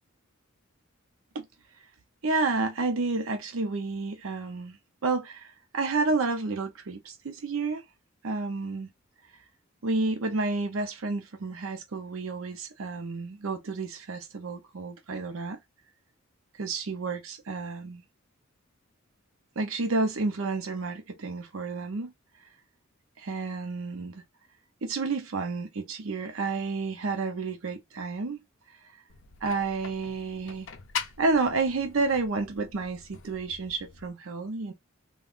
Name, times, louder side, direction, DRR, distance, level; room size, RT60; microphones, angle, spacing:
voice 1, 2.2-4.8 5.0-7.8 8.2-8.9 9.8-15.6 16.6-18.0 19.6-22.1 23.2-24.2 24.8-28.4 29.4-30.7 31.2-34.7, right 3 dB, 80° right, 0.6 m, -30 dB
sound 1, 29.1-34.1, left 7 dB, 65° left, 0.6 m, -42 dB
3.6 x 2.3 x 2.4 m
head